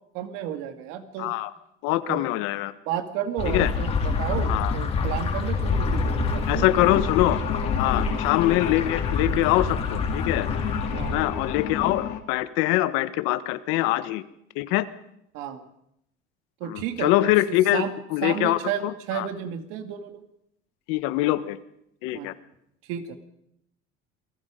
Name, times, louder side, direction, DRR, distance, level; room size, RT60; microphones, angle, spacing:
voice 1, 0.1-1.4 2.1-2.2 2.9-6.9 8.0-8.2 10.9-11.2 15.3-15.6 16.6-17.1 17.7-20.2 22.1-22.3 22.9-23.2, right 9 dB, 75° right, 7 dB, 2.4 m, -32 dB
voice 2, 1.2-1.5 1.8-2.7 3.4-3.7 4.5-4.7 6.5-7.4 7.8-10.5 11.1-14.2 14.5-14.9 16.7-17.8 18.1-19.3 20.9-21.6 22.0-22.3, left 16 dB, 85° left, 13 dB, 1.4 m, -24 dB
sound 1, 3.4-12.0, left 4 dB, 30° left, 3.4 m, -27 dB
sound 2, 5.7-12.2, left 10 dB, 65° left, 2.2 m, -34 dB
28.0 x 19.5 x 5.2 m, 0.77 s
cardioid pair, 175°, 21 cm